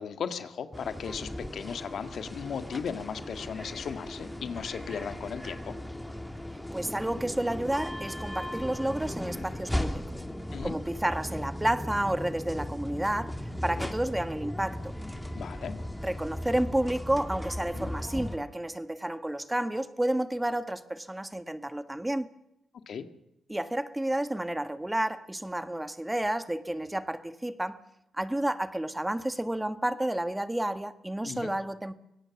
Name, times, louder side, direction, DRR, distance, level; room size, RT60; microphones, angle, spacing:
voice 1, 0.0-5.8 10.5-10.7 13.8-13.9 15.3-15.8 17.7-17.9 22.9-23.1 31.2-31.5, left 7 dB, 65° left, 9 dB, 1.7 m, -36 dB
sound 1, 0.7-18.4, left 1 dB, 5° left, 2.8 m, -37 dB
voice 2, 6.7-10.0 10.6-13.3 13.6-14.9 16.0-22.3 23.5-27.8 28.1-31.9, right 1 dB, 10° right, 11 dB, 1.6 m, -31 dB
24.0 x 18.0 x 7.1 m, 0.83 s
supercardioid pair, 45°, 0 cm